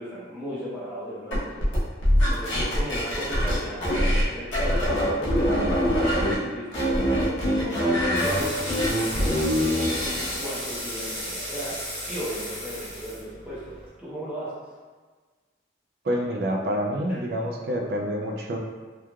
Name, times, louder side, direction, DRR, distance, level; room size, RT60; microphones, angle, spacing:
voice 1, 0.0-1.6 2.3-6.7 7.4-11.8 12.1-14.6 17.1-17.2, equal, 5° right, -10 dB, 0.6 m, -36 dB
sound 1, 1.3-4.3 4.5-6.3 6.7-10.4, equal, 90° left, 0.9 m, -23 dB
sound 2, 8.1-13.9, equal, 10° left, 1.0 m, -34 dB
voice 2, 16.0-18.6, equal, 55° right, 1 dB, 0.3 m, -27 dB
3.0 x 2.4 x 2.3 m, 1.4 s
head